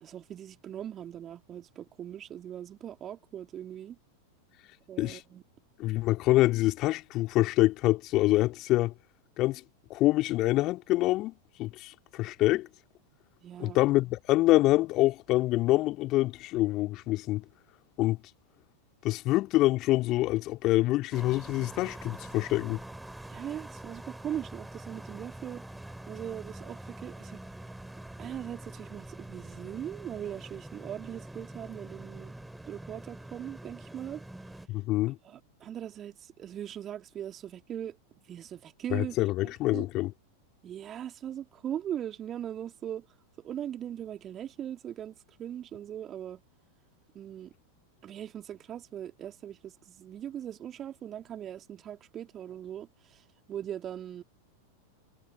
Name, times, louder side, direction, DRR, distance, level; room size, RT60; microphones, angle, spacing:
voice 1, 0.0-4.0 4.9-5.4 13.4-13.8 23.3-25.6 26.1-27.4 28.2-32.3 32.7-34.2 35.2-38.0 38.3-39.2 39.4-39.9 40.6-43.1 43.4-45.1 45.4-46.4 47.1-47.5 48.0-53.2 53.5-54.2, right 10 dB, 25° right, 2.8 m, -40 dB
voice 2, 5.8-8.9 9.4-9.6 9.9-12.7 13.6-17.4 18.0-18.2 19.0-22.8 34.7-35.2 38.9-40.1, left 17 dB, 35° left, 2.8 m, -26 dB
sound 1, 21.1-34.7, right 1 dB, 5° right, 4.2 m, -45 dB
figure-of-eight pair, 90°, 0 cm